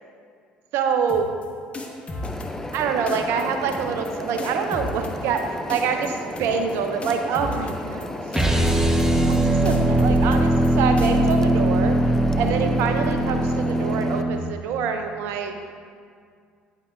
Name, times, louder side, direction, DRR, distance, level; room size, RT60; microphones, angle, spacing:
voice 1, 0.7-1.3 2.7-8.1 9.3-12.0 12.4-15.5, right 6 dB, 60° right, 6 dB, 0.7 m, -25 dB
sound 1, 1.1-1.5 1.7-2.8 3.1-3.4 3.7-4.1 4.4-5.4 5.7-6.1 6.4-6.7 7.0-8.1 8.3-8.7 9.0-9.4 9.7-10.7 11.0-11.4, left 2 dB, 25° left, 1.2 m, -34 dB
sound 2, 2.2-14.2, left 1 dB, 10° left, 0.5 m, -34 dB
sound 3, 8.3-14.4, right 1 dB, 10° right, 0.9 m, -20 dB
9.9 x 8.3 x 2.4 m, 2.1 s
hypercardioid pair, 55°, 5 cm